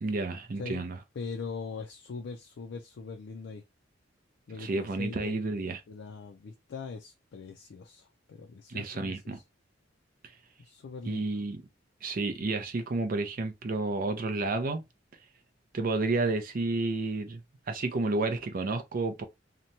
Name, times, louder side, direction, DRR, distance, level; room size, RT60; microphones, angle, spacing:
voice 1, 0.0-1.0 4.6-5.8 8.7-9.4 11.0-11.6 12.0-14.8 15.7-17.4 17.7-19.2, right 3 dB, 50° right, 0.5 m, -31 dB
voice 2, 1.2-3.6 4.5-9.4 10.6-11.2, left 4 dB, 65° left, 0.4 m, -41 dB
2.9 x 2.1 x 2.6 m
head